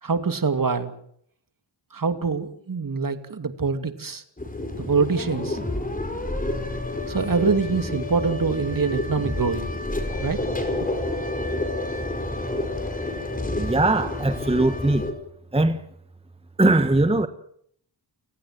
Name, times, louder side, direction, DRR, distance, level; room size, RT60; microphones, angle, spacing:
voice 1, 0.0-1.0 1.9-4.2 4.8-5.6 7.1-9.7 10.2-10.4, right 5 dB, 45° right, 10 dB, 2.6 m, -24 dB
sound 1, 4.4-15.1, left 2 dB, 20° left, 5.4 m, -29 dB
voice 2, 13.6-15.0 15.5-15.8 16.6-17.3, right 2 dB, 15° right, 10 dB, 1.3 m, -20 dB
29.0 x 18.0 x 7.7 m, 0.67 s
wide cardioid pair, 85°, 45 cm